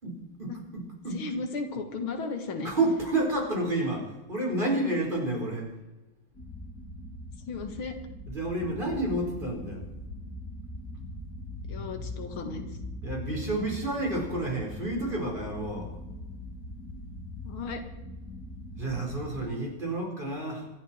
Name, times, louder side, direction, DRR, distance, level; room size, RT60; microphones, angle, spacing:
voice 1, 0.0-1.2 2.6-5.7 8.3-9.8 13.0-15.9 18.8-20.7, right 2 dB, 25° right, -1 dB, 5.0 m, -30 dB
voice 2, 1.1-2.7 7.5-8.0 11.7-12.7 17.4-17.8, left 4 dB, 90° left, 6 dB, 2.6 m, -35 dB
sound 1, 6.3-19.5, left 1 dB, 45° left, 3.4 m, -41 dB
26.0 x 12.0 x 4.6 m, 1.1 s
omnidirectional pair, 2.2 m